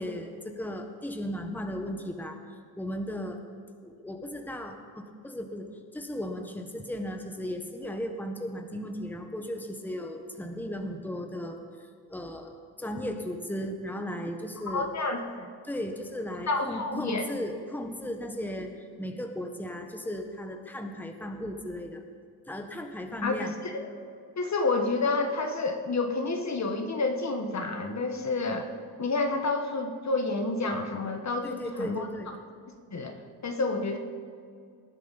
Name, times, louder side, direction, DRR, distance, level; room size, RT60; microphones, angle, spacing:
voice 1, 0.0-2.4 2.8-3.4 3.8-14.9 15.6-22.0 22.5-23.5 31.4-32.3, equal, 5° left, 4 dB, 1.4 m, -36 dB
voice 2, 14.7-15.5 16.5-17.2 23.2-23.4 23.6-23.9 24.4-28.7 29.0-32.1 32.9-33.2 33.4-34.0, left 3 dB, 40° left, 5 dB, 1.4 m, -29 dB
20.0 x 10.5 x 4.2 m, 2.3 s
cardioid pair, 80°, 43 cm